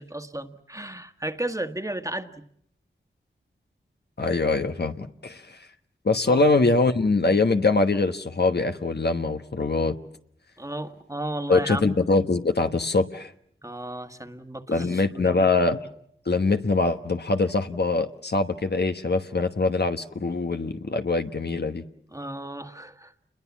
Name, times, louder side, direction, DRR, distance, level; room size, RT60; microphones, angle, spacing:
voice 1, 0.0-2.4 6.3-6.4 10.6-11.9 13.6-15.4 22.1-23.1, right 1 dB, 15° right, 1.7 m, -34 dB
voice 2, 4.2-5.6 6.0-9.9 11.5-13.3 14.7-15.9 16.3-21.8, left 3 dB, 55° left, 1.3 m, -23 dB
28.5 x 21.5 x 7.3 m
cardioid pair, 50°, 20 cm